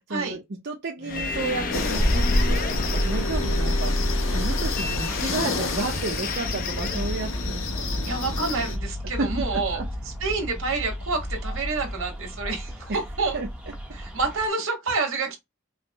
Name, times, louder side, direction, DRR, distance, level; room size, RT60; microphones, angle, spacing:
voice 1, 0.1-8.1 9.2-9.9 13.3-13.5, right 3 dB, 55° right, 0.7 m, -32 dB
sound 1, 1.0-7.5, left 1 dB, 45° left, 0.6 m, -29 dB
sound 2, 1.1-14.5, equal, 5° right, 0.9 m, -35 dB
sound 3, 1.7-8.8, left 2 dB, 80° left, 1.2 m, -27 dB
voice 2, 8.0-9.8 10.0-13.4 13.9-15.4, right 4 dB, 80° right, 1.6 m, -28 dB
5.0 x 2.1 x 3.0 m
head